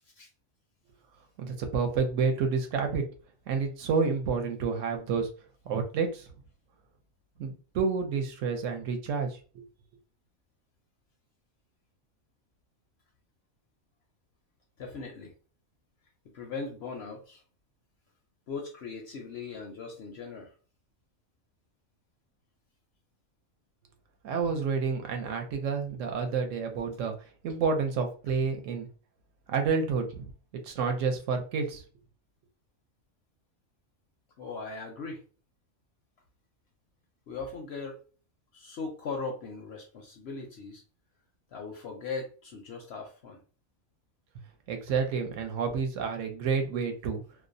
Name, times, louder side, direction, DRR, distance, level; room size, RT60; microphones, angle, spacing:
voice 1, 1.4-3.0 3.5-5.3 5.7-6.3 7.4-9.6 24.2-27.1 27.4-28.9 29.5-30.3 30.6-31.8 44.7-47.2, right 5 dB, 70° right, 4 dB, 0.9 m, -29 dB
voice 2, 14.8-15.3 16.3-17.4 18.5-20.5 28.3-28.4 34.4-35.3 37.3-38.0 38.5-40.8 41.5-43.4 44.9-45.0, left 4 dB, 65° left, 2 dB, 0.7 m, -39 dB
2.4 x 2.0 x 2.5 m, 0.38 s
omnidirectional pair, 1.4 m